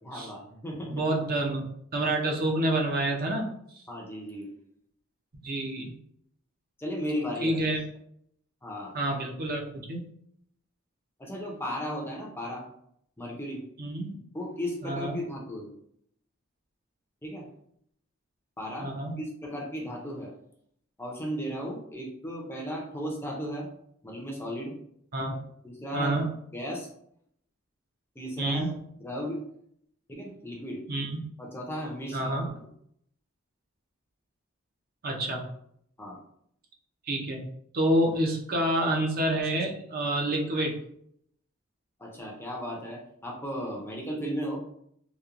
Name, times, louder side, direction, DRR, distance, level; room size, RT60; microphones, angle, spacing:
voice 1, 0.0-1.0 3.9-4.5 6.8-7.7 8.6-8.9 11.2-12.7 13.2-13.6 14.3-15.7 17.2-17.5 18.6-18.9 19.2-20.3 21.0-23.7 24.0-24.8 25.6-26.3 26.5-26.9 28.2-28.7 29.0-29.4 30.1-30.8 31.4-32.5 36.0-36.2 42.0-44.6, equal, 10° left, -1 dB, 0.5 m, -35 dB
voice 2, 0.7-1.7 1.9-3.5 3.7-3.8 5.4-5.9 7.4-7.8 8.9-10.0 13.8-14.2 14.8-15.2 18.8-19.2 25.1-25.4 25.9-26.3 28.4-28.7 30.9-31.2 32.1-32.5 35.0-35.5 37.1-37.4 37.7-40.7, right 1 dB, 45° right, 0 dB, 0.5 m, -28 dB
2.9 x 2.1 x 2.4 m, 0.69 s
head